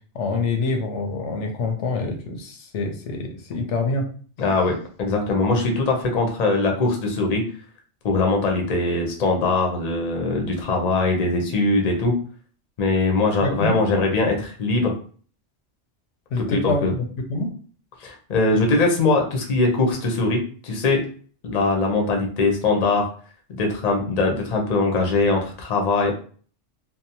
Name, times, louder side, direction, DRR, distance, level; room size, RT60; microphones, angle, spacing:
voice 1, 0.1-4.1 13.4-13.8 16.3-17.5, left 3 dB, 80° left, 4 dB, 0.9 m, -26 dB
voice 2, 4.4-7.5 8.0-12.2 12.8-14.9 16.4-16.9 18.0-21.1 21.4-23.1 23.5-26.1, left 3 dB, 45° left, 2 dB, 0.6 m, -21 dB
2.7 x 2.0 x 2.7 m, 0.43 s
omnidirectional pair, 1.2 m